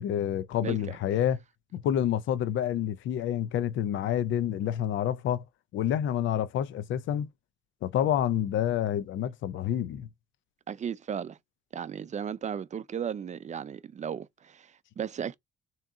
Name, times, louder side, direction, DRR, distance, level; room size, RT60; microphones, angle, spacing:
voice 1, 0.0-1.4 1.7-5.4 5.7-7.3 7.8-10.1, left 10 dB, 75° left, 0.5 m, -28 dB
voice 2, 0.6-1.0 10.7-11.4 11.7-15.3, right 8 dB, 35° right, 0.5 m, -35 dB
3.6 x 2.9 x 3.6 m
cardioid pair, 90°, 20 cm